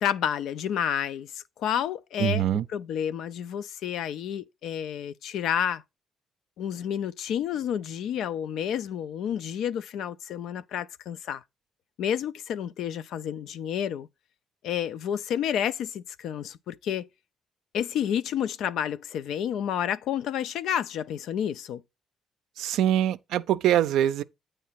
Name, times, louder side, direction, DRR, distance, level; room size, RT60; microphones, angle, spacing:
voice 1, 0.0-5.8 6.6-11.4 12.0-14.1 14.6-17.1 17.7-21.8, left 9 dB, 80° left, 0.4 m, -30 dB
voice 2, 2.2-2.6 22.6-24.2, right 11 dB, 85° right, 0.4 m, -23 dB
8.6 x 3.3 x 5.6 m
cardioid pair, 90°, 0 cm